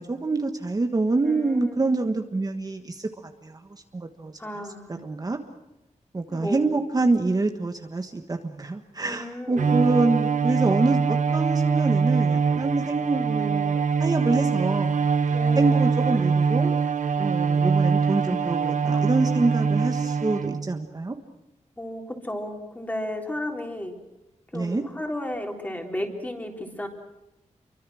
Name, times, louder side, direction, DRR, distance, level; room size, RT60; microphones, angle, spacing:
voice 1, 0.0-4.3 5.0-5.4 6.1-15.0 15.5-16.7 17.2-21.1 24.5-24.8, right 3 dB, 30° right, 5 dB, 1.4 m, -26 dB
voice 2, 1.2-1.8 4.4-5.0 6.3-6.7 9.0-9.7 15.3-15.8 18.9-19.4 21.8-24.0 24.5-26.9, left 1 dB, 15° left, 2 dB, 3.8 m, -34 dB
Bowed string instrument, 9.6-20.8, right 5 dB, 80° right, 1.1 m, -23 dB
29.0 x 24.0 x 6.4 m, 0.93 s
wide cardioid pair, 160°, 13 cm